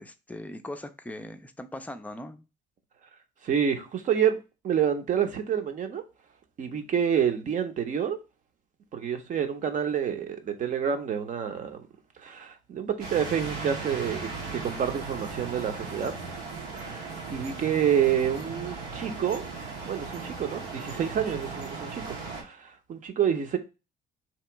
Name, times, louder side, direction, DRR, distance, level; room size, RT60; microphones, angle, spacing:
voice 1, 0.0-2.4, left 1 dB, 10° left, 0.5 m, -40 dB
voice 2, 3.4-6.0 6.6-8.2 8.9-11.8 12.2-16.2 16.7-17.0 17.3-19.5 19.8-23.6, right 8 dB, 50° right, 0.8 m, -28 dB
sound 1, 13.0-22.4, right 4 dB, 90° right, 1.3 m, -37 dB
3.0 x 2.8 x 4.5 m
cardioid pair, 110°, 17 cm